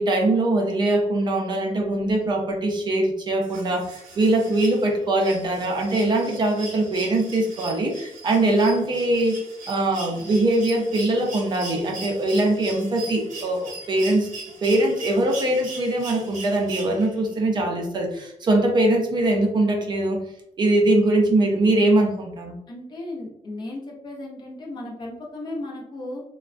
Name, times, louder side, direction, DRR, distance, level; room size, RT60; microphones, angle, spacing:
voice 1, 0.0-9.4 9.7-14.3 14.6-20.2 20.6-22.6, right 2 dB, 35° right, 1 dB, 0.4 m, -22 dB
sound 1, 3.4-17.3 18.8-18.9, right 3 dB, 85° right, 0.8 m, -40 dB
voice 2, 22.7-26.2, left 1 dB, 35° left, -1 dB, 0.6 m, -35 dB
3.3 x 2.1 x 2.4 m, 0.77 s
wide cardioid pair, 180°, 13 cm